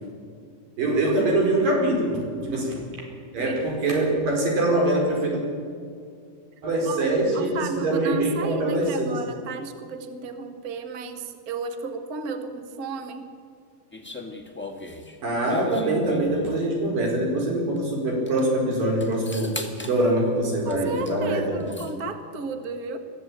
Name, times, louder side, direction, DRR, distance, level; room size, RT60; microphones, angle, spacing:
voice 1, 0.8-2.8 3.3-5.4 6.6-9.2 15.2-19.6 19.8-21.7, right 1 dB, 75° right, 0 dB, 6.4 m, -24 dB
voice 2, 2.4-2.7 3.4-3.6 6.9-7.1 7.3-13.3 20.6-23.0, right 4 dB, 45° right, 8 dB, 1.2 m, -33 dB
sound 1, 13.9-16.7 17.8-17.9 18.1-18.4 19.0-20.0 20.7-21.2 21.4-21.9, left 2 dB, 15° left, 0.3 m, -39 dB
22.0 x 14.5 x 8.8 m, 2.2 s
omnidirectional pair, 3.9 m